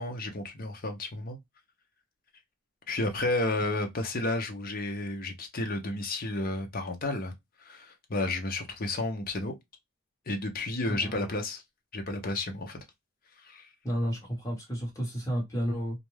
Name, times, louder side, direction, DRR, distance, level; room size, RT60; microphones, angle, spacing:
voice 1, 0.0-1.4 2.9-7.3 7.6-9.5 10.3-11.6 11.9-12.8 13.4-13.7, left 2 dB, 40° left, 0.7 m, -32 dB
voice 2, 13.8-16.0, equal, 15° left, 1.3 m, -31 dB
2.5 x 2.2 x 3.0 m
head